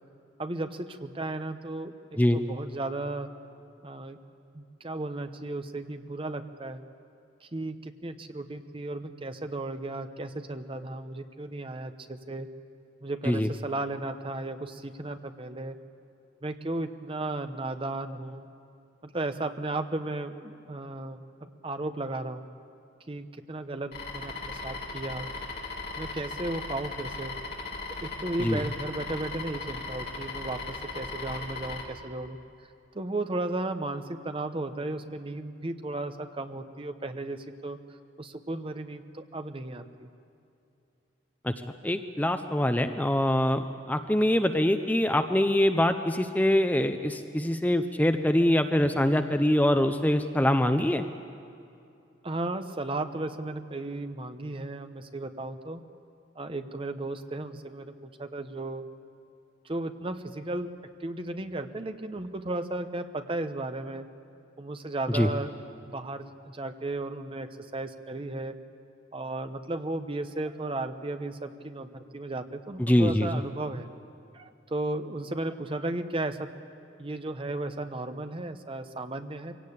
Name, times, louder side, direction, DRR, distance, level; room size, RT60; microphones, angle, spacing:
voice 1, 0.4-3.3 3.8-4.2 4.5-6.8 7.4-12.5 13.0-15.8 16.4-18.5 19.0-22.5 23.1-25.3 26.0-27.4 28.0-32.4 32.9-37.8 38.2-40.1 52.2-55.8 56.4-58.9 59.6-60.7 61.0-64.1 64.6-65.5 65.8-68.6 69.1-73.9 74.3-76.5 77.0-79.5, right 2 dB, 30° right, 8 dB, 0.9 m, -35 dB
sound 1, 23.9-31.8, left 3 dB, 55° left, 2.8 m, -38 dB
voice 2, 41.8-43.6 43.9-51.0 65.1-65.3 72.8-73.3, left 1 dB, 10° left, 8 dB, 0.6 m, -24 dB
24.0 x 17.5 x 8.5 m, 2.6 s
head